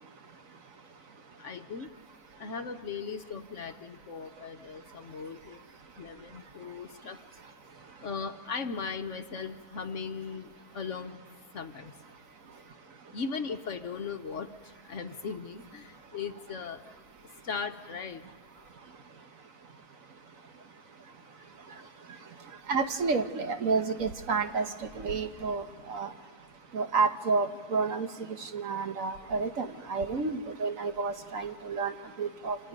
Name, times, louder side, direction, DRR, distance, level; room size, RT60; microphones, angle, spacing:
voice 1, 1.4-1.9 2.4-5.6 6.0-7.2 8.0-11.1 11.5-11.9 13.1-14.5 14.8-16.8 17.4-18.2, left 5 dB, 55° left, 7 dB, 1.1 m, -38 dB
voice 2, 22.7-26.1 26.7-32.6, right 4 dB, 60° right, 7 dB, 1.4 m, -30 dB
28.5 x 27.0 x 5.2 m, 1.4 s
omnidirectional pair, 1.7 m